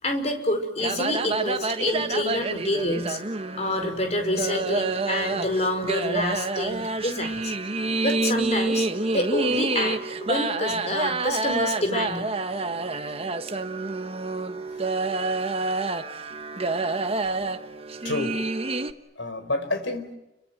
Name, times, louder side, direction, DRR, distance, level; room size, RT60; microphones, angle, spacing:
voice 1, 0.0-3.2 3.5-7.5 8.0-8.9 9.1-12.3, left 1 dB, 35° left, 6 dB, 4.8 m, -27 dB
sound 1, 0.8-18.9, right 3 dB, 30° right, 1.3 m, -28 dB
voice 2, 18.0-18.5 19.2-20.1, left 2 dB, 80° left, 8 dB, 4.7 m, -30 dB
29.5 x 23.5 x 7.9 m, 0.93 s
head